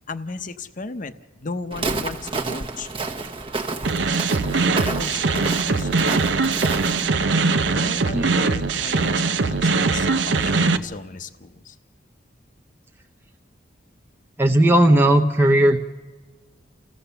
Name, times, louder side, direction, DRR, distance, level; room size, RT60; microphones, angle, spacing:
voice 1, 0.1-2.9 4.8-6.1 7.7-11.8, left 3 dB, 45° left, 10 dB, 0.8 m, -35 dB
Walk footsteps, 1.7-7.1, right 3 dB, 30° right, 1.1 m, -30 dB
sound 1, 3.8-10.8, right 4 dB, 75° right, 0.7 m, -21 dB
voice 2, 14.4-15.8, right 1 dB, 10° right, 2 dB, 0.7 m, -16 dB
29.5 x 15.5 x 6.9 m, 1.3 s
head